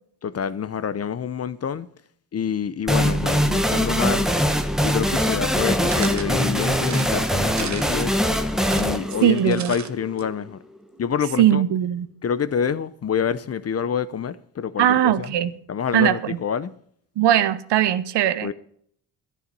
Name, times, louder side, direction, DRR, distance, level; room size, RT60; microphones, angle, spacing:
voice 1, 0.2-1.9 2.3-4.3 4.8-8.2 8.7-10.6 11.0-11.6 12.2-15.3 15.7-16.7 18.4-18.5, left 7 dB, 35° left, 0.6 m, -27 dB
sound 1, 2.9-10.3, equal, ahead, 0.9 m, -22 dB
sound 2, 5.8-6.3 6.8-8.1 8.5-9.9 10.2-10.3 10.5-10.6, right 8 dB, 40° right, 0.9 m, -35 dB
voice 2, 9.2-9.7 11.4-12.1 14.8-15.5 15.9-16.4 17.2-18.5, right 11 dB, 70° right, 0.9 m, -19 dB
11.0 x 10.0 x 5.3 m
cardioid pair, 85°, 43 cm